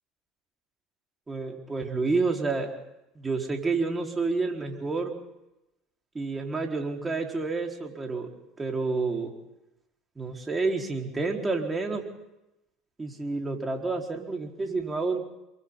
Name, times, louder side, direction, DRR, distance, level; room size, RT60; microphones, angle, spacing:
voice 1, 1.3-2.7 3.1-5.2 6.1-8.3 8.6-9.3 10.2-12.0 13.0-15.2, right 3 dB, 20° right, 1 dB, 4.5 m, -29 dB
28.5 x 23.5 x 4.0 m, 0.92 s
hypercardioid pair, 75°, 0 cm